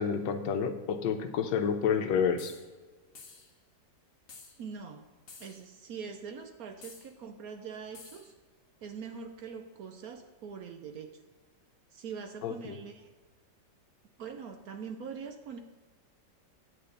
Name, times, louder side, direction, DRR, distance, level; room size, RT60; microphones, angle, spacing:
voice 1, 0.0-2.5 12.4-12.8, left 7 dB, 80° left, 7 dB, 1.4 m, -29 dB
sound 1, 2.4-2.7 3.2-3.5 4.3-4.6 5.3-5.7 6.8-7.1 7.9-8.3, left 4 dB, 40° left, 1.0 m, -50 dB
voice 2, 4.6-5.1 5.4-8.3 8.8-11.2 11.9-13.1 14.2-15.6, right 6 dB, 65° right, 6 dB, 1.0 m, -43 dB
8.8 x 8.5 x 3.9 m, 1.4 s
omnidirectional pair, 2.0 m